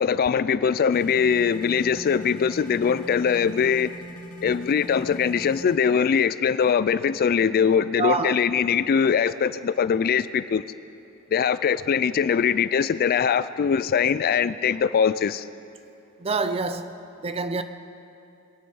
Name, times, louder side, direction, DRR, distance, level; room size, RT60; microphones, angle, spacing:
voice 1, 0.0-3.9 4.4-10.6 11.3-15.5, left 7 dB, 40° left, 0.3 m, -22 dB
sound 1, 0.9-5.8, right 1 dB, 85° left, 1.6 m, -42 dB
voice 2, 8.0-8.4 16.2-16.9 17.2-17.6, right 3 dB, 25° right, 0.6 m, -26 dB
23.0 x 9.5 x 5.5 m
head